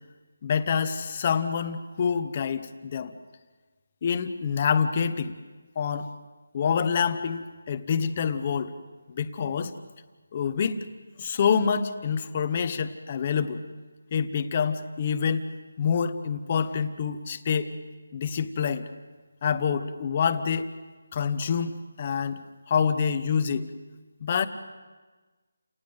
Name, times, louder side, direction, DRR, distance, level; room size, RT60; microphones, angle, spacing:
voice 1, 0.4-3.1 4.0-5.4 5.7-6.1 6.5-8.7 9.1-9.7 10.3-10.8 11.2-13.6 14.1-15.5 15.8-17.7 18.1-18.9 19.4-20.7 21.1-23.7 24.2-24.5, left 6 dB, 25° left, 10 dB, 1.0 m, -27 dB
29.5 x 18.5 x 8.0 m, 1.3 s
figure-of-eight pair, 175°, 0 cm